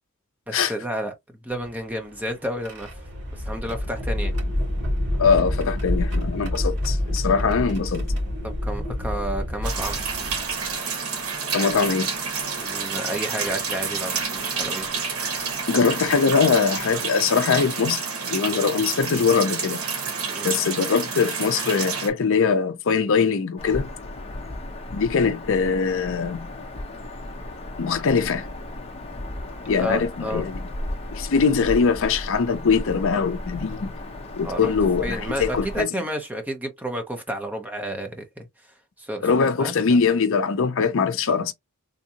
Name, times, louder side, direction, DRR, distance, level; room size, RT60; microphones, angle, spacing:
voice 1, 0.5-1.1 1.4-3.0 3.3-4.3 8.4-10.0 12.6-14.9 20.3-20.5 29.8-30.4 34.4-34.7 35.0-38.5 39.0-40.0, equal, 5° right, 0.7 m, -31 dB
sound 1, 1.5-10.8 11.7-11.8 13.2-13.5 14.2-14.4 16.0-16.1 16.5-16.8, left 1 dB, 50° right, 2.1 m, -28 dB
voice 2, 5.2-8.1 11.5-12.1 15.7-19.8 20.4-23.9 24.9-26.5 27.8-28.5 29.7-30.6 31.1-33.9 34.4-35.9 39.2-41.5, left 5 dB, 60° left, 0.5 m, -22 dB
sound 2, 9.6-22.1, right 5 dB, 70° right, 1.2 m, -29 dB
Bird vocalization bird call bird song, 23.6-35.8, left 1 dB, 25° left, 0.8 m, -35 dB
3.6 x 2.7 x 2.8 m
head